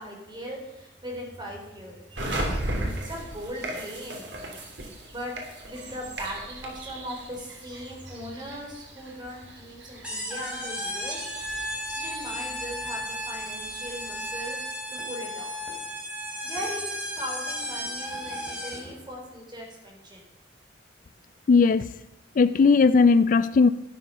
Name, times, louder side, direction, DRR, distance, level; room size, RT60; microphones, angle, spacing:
voice 1, 0.0-2.3 2.8-4.3 4.8-5.3 5.6-11.3 12.0-15.6 16.4-20.2, equal, 25° right, 3.7 m, -39 dB
sound 1, 2.1-14.5, right 1 dB, 80° right, 3.1 m, -37 dB
sound 2, 10.0-18.9, equal, 5° right, 3.5 m, -34 dB
voice 2, 21.5-21.9 22.4-23.7, left 4 dB, 50° left, 0.4 m, -18 dB
12.0 x 11.0 x 5.5 m
head